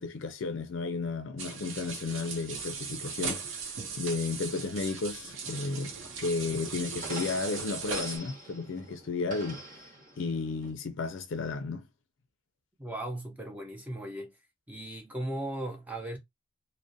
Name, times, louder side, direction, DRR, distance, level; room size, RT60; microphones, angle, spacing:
voice 1, 0.0-5.9 6.2-9.8 10.2-11.9, left 4 dB, 60° left, 0.4 m, -33 dB
sound 1, 1.4-8.2, right 5 dB, 65° right, 0.6 m, -38 dB
sound 2, 5.5-10.7, right 1 dB, 40° right, 0.8 m, -45 dB
voice 2, 12.8-14.4 14.7-16.2, right 1 dB, 5° right, 0.4 m, -37 dB
2.4 x 2.1 x 2.5 m
head